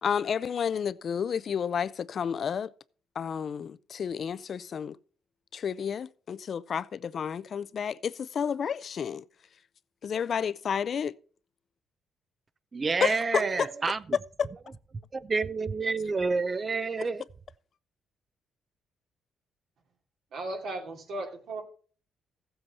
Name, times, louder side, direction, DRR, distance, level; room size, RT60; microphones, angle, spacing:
voice 1, 0.0-2.7 3.2-5.0 5.5-9.2 10.0-11.1 13.0-13.4 14.4-14.5, left 7 dB, 55° left, 0.4 m, -31 dB
voice 2, 12.7-14.2 15.1-17.2, right 4 dB, 35° right, 0.5 m, -29 dB
voice 3, 13.4-13.9 20.3-21.6, right 2 dB, 75° right, 2.7 m, -37 dB
15.0 x 7.9 x 4.2 m
cardioid pair, 90°, 0 cm